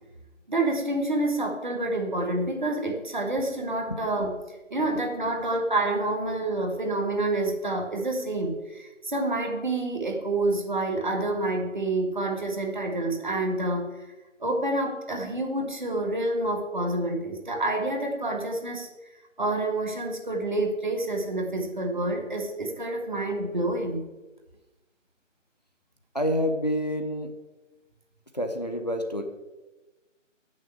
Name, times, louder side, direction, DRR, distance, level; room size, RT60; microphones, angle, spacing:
voice 1, 0.5-13.9 14.4-18.9 19.4-24.1, right 2 dB, 40° right, 1 dB, 1.6 m, -28 dB
voice 2, 26.1-27.3 28.3-29.2, equal, 35° left, 4 dB, 0.7 m, -27 dB
7.2 x 6.4 x 7.9 m, 1.1 s
figure-of-eight pair, 160°, 38 cm